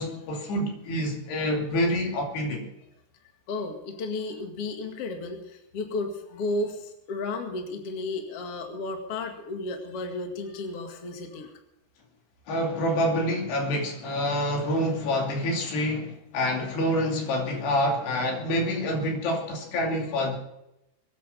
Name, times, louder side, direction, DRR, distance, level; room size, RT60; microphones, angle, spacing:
voice 1, 0.0-2.6 12.5-20.4, left 1 dB, 80° left, 4.8 m, -27 dB
voice 2, 3.5-11.5, left 2 dB, 45° left, 2.5 m, -33 dB
23.0 x 9.6 x 5.5 m
omnidirectional pair, 4.8 m